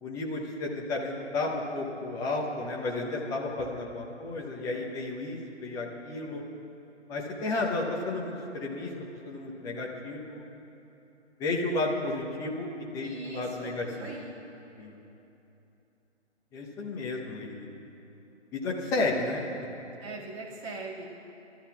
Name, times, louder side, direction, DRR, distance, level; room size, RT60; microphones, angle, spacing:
voice 1, 0.0-6.4 7.1-8.9 9.2-10.4 11.4-14.1 14.8-15.0 16.5-17.7 18.5-19.4, left 2 dB, 10° left, -2 dB, 0.9 m, -32 dB
voice 2, 13.0-14.3 20.0-21.1, right 3 dB, 25° right, -4 dB, 2.1 m, -41 dB
27.0 x 13.5 x 2.4 m, 3.0 s
figure-of-eight pair, 140°, 35 cm